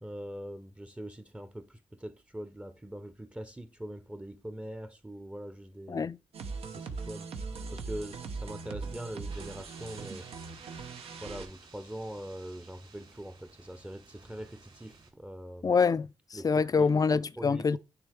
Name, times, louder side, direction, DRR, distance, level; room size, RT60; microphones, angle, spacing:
voice 1, 0.0-6.1 6.8-7.3 7.7-10.3 11.2-15.7 16.3-16.9 17.4-17.8, right 1 dB, 10° right, 0.7 m, -42 dB
sound 1, 6.3-11.5, right 4 dB, 80° right, 1.0 m, -40 dB
sound 2, 9.3-15.1, right 4 dB, 55° right, 3.0 m, -55 dB
voice 2, 15.6-17.8, left 5 dB, 40° left, 0.4 m, -26 dB
9.4 x 3.2 x 3.5 m
supercardioid pair, 55°, 10 cm